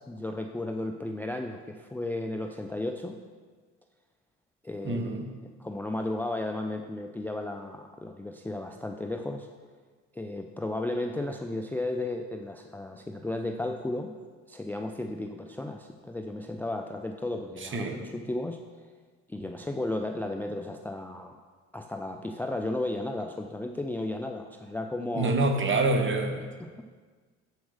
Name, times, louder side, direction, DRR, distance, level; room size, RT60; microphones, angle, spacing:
voice 1, 0.0-3.2 4.6-5.2 5.6-9.5 10.1-14.1 14.5-18.6 19.3-21.4 21.7-25.3 26.6-26.8, left 2 dB, 5° left, 5 dB, 0.4 m, -34 dB
voice 2, 4.8-5.3 17.7-18.0 25.1-26.5, right 2 dB, 35° right, 5 dB, 1.1 m, -26 dB
7.3 x 4.6 x 6.4 m, 1.5 s
supercardioid pair, 75°, 33 cm